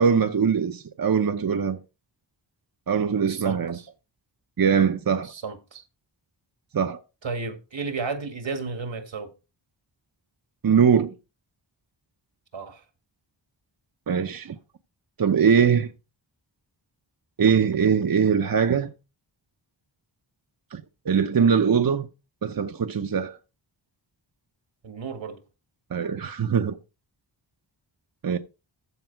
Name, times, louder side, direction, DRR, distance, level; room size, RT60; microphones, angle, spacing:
voice 1, 0.0-1.8 2.9-3.8 4.6-5.3 6.7-7.0 10.6-11.1 14.1-14.6 15.2-15.9 17.4-18.9 20.7-22.1 22.4-23.4 25.9-26.8 28.2-28.4, right 6 dB, 50° right, 0.8 m, -22 dB
voice 2, 3.3-3.8 5.2-5.8 7.2-9.3 12.5-12.8 24.8-25.4, right 4 dB, 80° right, 1.9 m, -33 dB
14.0 x 4.8 x 4.6 m
wide cardioid pair, 95°, 45 cm